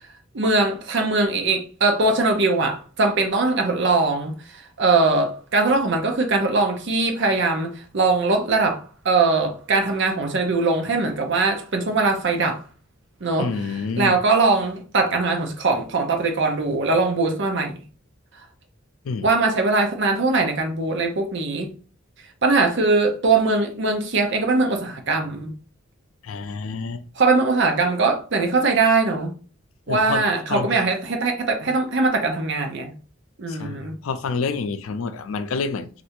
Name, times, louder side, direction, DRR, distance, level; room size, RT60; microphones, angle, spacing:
voice 1, 0.3-12.6 13.2-17.8 19.2-21.7 22.4-25.5 27.1-29.3 29.9-32.9 33.4-33.9, right 3 dB, 60° right, 0.7 m, -21 dB
voice 2, 13.4-14.2 19.0-19.3 26.2-27.0 29.9-30.2 30.5-30.7 33.5-35.9, left 4 dB, 90° left, 0.4 m, -28 dB
3.2 x 2.5 x 2.9 m
head